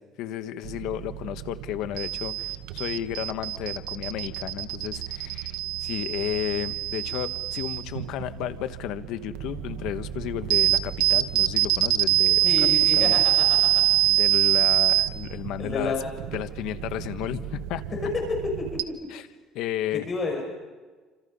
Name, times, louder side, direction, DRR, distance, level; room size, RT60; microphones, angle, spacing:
voice 1, 0.2-12.7 12.9-13.2 14.1-15.9 16.3-17.8 19.1-19.3 19.5-20.1, left 12 dB, 70° left, 10 dB, 1.3 m, -33 dB
sound 1, 0.6-18.8, right 14 dB, 85° right, 1.1 m, -26 dB
voice 2, 12.4-13.8 15.6-16.1 17.9-19.1 19.9-20.4, left 3 dB, 30° left, 1 dB, 5.9 m, -30 dB
28.5 x 26.0 x 5.5 m, 1.3 s
cardioid pair, 120°, 0 cm